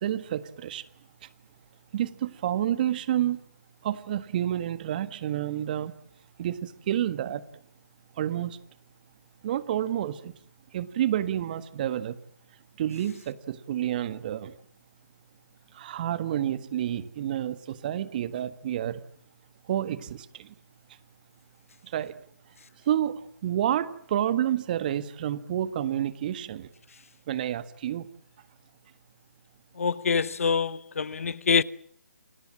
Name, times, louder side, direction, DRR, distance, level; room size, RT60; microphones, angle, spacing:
voice 1, 0.0-0.8 1.2-1.3 1.9-3.4 3.8-5.9 6.4-7.4 8.2-8.6 9.4-10.3 10.7-12.2 12.8-14.5 15.7-19.0 19.7-20.5 21.8-22.1 22.8-26.7 27.3-28.1, right 11 dB, 30° right, 1.6 m, -29 dB
voice 2, 29.8-31.6, left 5 dB, 55° left, 1.0 m, -25 dB
29.0 x 24.0 x 7.4 m
figure-of-eight pair, 150°, 9 cm